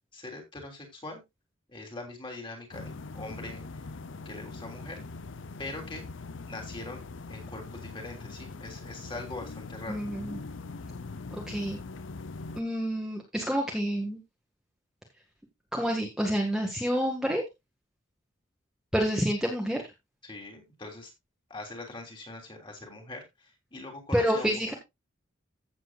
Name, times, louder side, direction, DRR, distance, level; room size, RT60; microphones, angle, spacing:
voice 1, 0.1-1.2 1.7-3.8 4.2-5.0 5.6-6.0 6.5-10.0 20.2-21.1 21.5-24.6, left 2 dB, 25° left, 1 dB, 3.2 m, -42 dB
sound 1, 2.7-12.6, left 3 dB, 70° left, 0.7 m, -42 dB
voice 2, 9.9-10.4 11.3-11.8 12.5-14.2 15.7-17.4 18.9-19.8 24.1-24.7, equal, 5° right, 0 dB, 1.6 m, -28 dB
15.0 x 7.7 x 2.4 m, 0.22 s
head